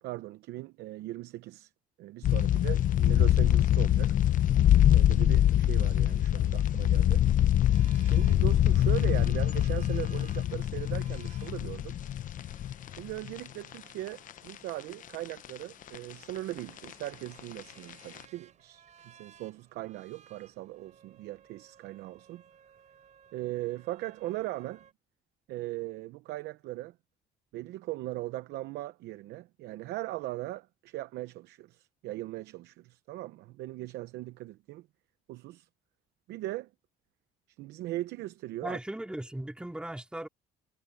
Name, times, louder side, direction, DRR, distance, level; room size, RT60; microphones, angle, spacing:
voice 1, 0.0-1.7 2.0-4.1 4.9-7.2 8.0-12.0 13.0-22.4 23.3-24.8 25.5-27.0 27.5-34.9 35.3-35.7 36.3-36.7 37.6-38.8, right 17 dB, 85° right, 0.8 m, -39 dB
sound 1, 2.2-13.7 14.1-14.2 14.7-15.5 15.8-16.0 16.3-17.6 17.9-18.2, left 11 dB, 50° left, 0.7 m, -24 dB
sound 2, 7.7-24.9, right 8 dB, 45° right, 5.9 m, -59 dB
voice 2, 38.6-40.3, right 1 dB, 5° right, 3.0 m, -37 dB
cardioid pair, 110°, 17 cm